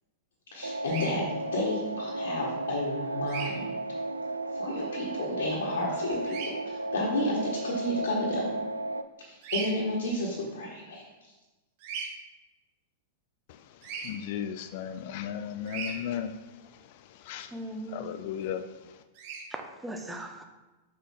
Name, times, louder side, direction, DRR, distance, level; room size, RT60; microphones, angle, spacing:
voice 1, 0.5-3.7 4.5-6.4 6.6-8.5 9.2-11.0, left 1 dB, 70° left, 1.6 m, -31 dB
sound 1, 0.6-9.0, right 2 dB, 90° right, 0.4 m, -34 dB
Bird vocalization bird call bird song, 0.8-1.1 3.3-3.5 6.3-6.5 9.4-9.7 11.8-12.1 13.8-14.1 15.7-15.9 19.1-19.4, right 6 dB, 50° right, 1.6 m, -36 dB
voice 2, 13.5-17.6 17.9-19.0, left 9 dB, 50° left, 0.4 m, -37 dB
voice 3, 17.5-18.0 19.5-20.4, right 1 dB, 10° right, 1.0 m, -38 dB
6.6 x 6.5 x 3.7 m
figure-of-eight pair, 100°, 0 cm